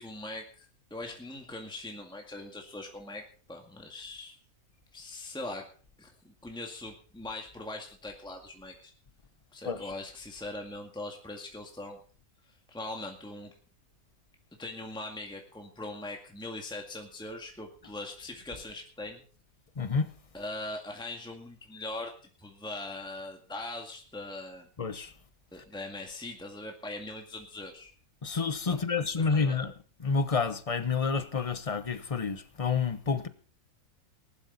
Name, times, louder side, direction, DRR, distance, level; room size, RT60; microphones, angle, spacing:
voice 1, 0.0-4.4 4.9-5.7 6.0-8.9 9.5-12.0 12.7-13.5 14.6-19.2 20.3-22.1 22.4-24.7 25.5-27.9 28.7-29.6, left 2 dB, 5° left, 2.0 m, -41 dB
voice 2, 19.8-20.1 24.8-25.1 28.2-29.7 30.0-33.3, left 5 dB, 30° left, 0.9 m, -29 dB
19.5 x 12.0 x 4.1 m
omnidirectional pair, 1.6 m